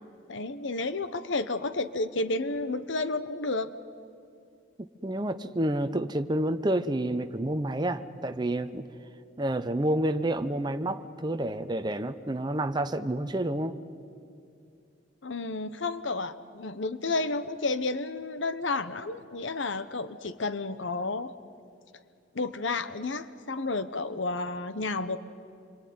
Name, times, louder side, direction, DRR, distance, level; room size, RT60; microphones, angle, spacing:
voice 1, 0.3-3.7 15.2-21.3 22.3-25.2, left 3 dB, 70° left, 12 dB, 1.0 m, -31 dB
voice 2, 4.8-8.9 9.4-13.8, right 1 dB, 20° right, 8 dB, 0.8 m, -29 dB
26.5 x 23.5 x 9.5 m, 2.5 s
head